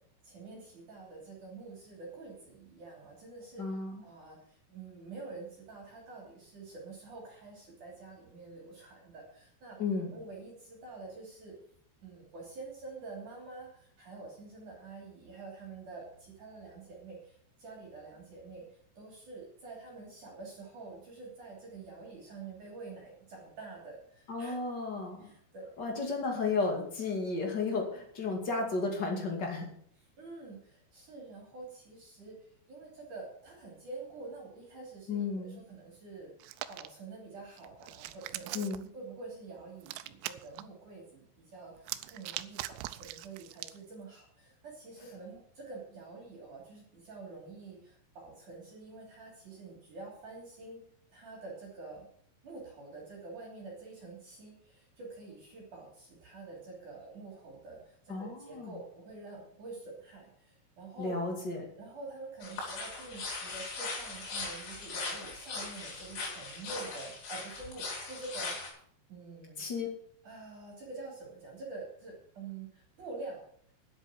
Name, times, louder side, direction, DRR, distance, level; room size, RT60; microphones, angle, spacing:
voice 1, 0.2-9.8 10.1-11.5 12.0-24.6 25.2-25.7 30.2-36.3 36.7-38.6 38.9-50.8 51.1-52.1 52.4-61.2 61.8-68.6 69.1-69.7 70.2-73.4, right 3 dB, 45° right, -2 dB, 4.0 m, -47 dB
voice 2, 3.6-4.0 9.8-10.1 24.3-25.3 25.8-29.7 35.1-35.6 38.5-38.9 58.1-58.8 61.0-61.6 69.6-69.9, left 3 dB, 45° left, 1 dB, 1.4 m, -33 dB
Hands, 36.4-36.9 37.6-38.9 39.8-40.6 41.8-43.8, right 16 dB, 80° right, 3.1 m, -41 dB
sound 1, 62.4-68.7, left 3 dB, 65° left, 6.8 m, -39 dB
10.0 x 8.0 x 8.0 m, 0.63 s
omnidirectional pair, 5.9 m